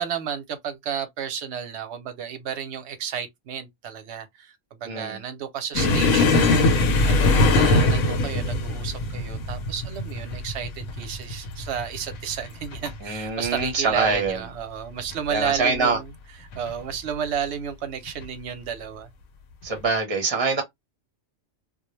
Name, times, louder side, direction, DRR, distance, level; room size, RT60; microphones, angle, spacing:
voice 1, 0.0-16.1 16.6-19.1, right 8 dB, 65° right, 0.8 m, -32 dB
voice 2, 4.8-5.2 13.0-14.5 15.3-16.0 19.6-20.6, right 4 dB, 30° right, 0.6 m, -24 dB
sound 1, 5.7-13.0 13.3-13.6 14.0-14.1 15.0-15.5 16.5-16.7 18.1-18.2, left 2 dB, 85° left, 1.0 m, -22 dB
2.3 x 2.0 x 3.0 m
omnidirectional pair, 1.4 m